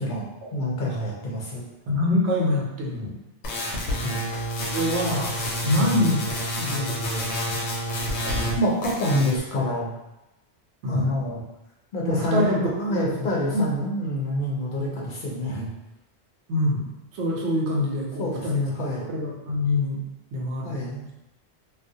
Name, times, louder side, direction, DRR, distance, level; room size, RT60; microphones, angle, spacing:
voice 1, 0.0-1.6 4.0-4.3 5.7-5.9 8.6-9.9 10.9-11.4 11.9-15.7 18.2-19.1 20.6-21.0, left 1 dB, 55° left, -4 dB, 0.6 m, -27 dB
voice 2, 1.9-3.1 4.7-5.3 5.6-6.2 6.6-7.6 8.2-8.6 10.8-11.1 12.0-13.3 13.5-13.6 16.5-18.8 19.1-20.0 20.3-20.8, left 1 dB, 90° right, -2 dB, 0.9 m, -25 dB
sound 1, 3.4-8.6 8.8-9.4, equal, 85° left, 0.9 m, -29 dB
2.4 x 2.1 x 2.6 m, 0.93 s
omnidirectional pair, 1.1 m